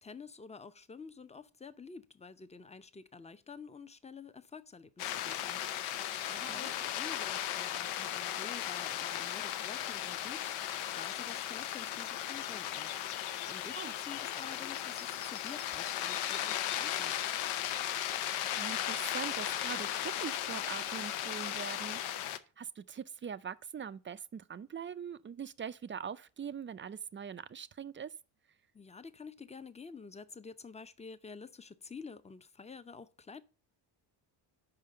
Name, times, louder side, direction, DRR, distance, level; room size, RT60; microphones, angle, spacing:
voice 1, 0.0-5.6 6.3-10.7 11.0-12.9 13.4-17.2 28.7-33.4, left 5 dB, 15° left, 0.6 m, -49 dB
sound 1, 5.0-22.4, left 11 dB, 75° left, 0.8 m, -36 dB
voice 2, 6.3-6.7 13.8-13.9 18.1-22.0 22.6-28.1, right 7 dB, 25° right, 0.4 m, -43 dB
5.7 x 4.9 x 6.5 m
supercardioid pair, 65°, 50 cm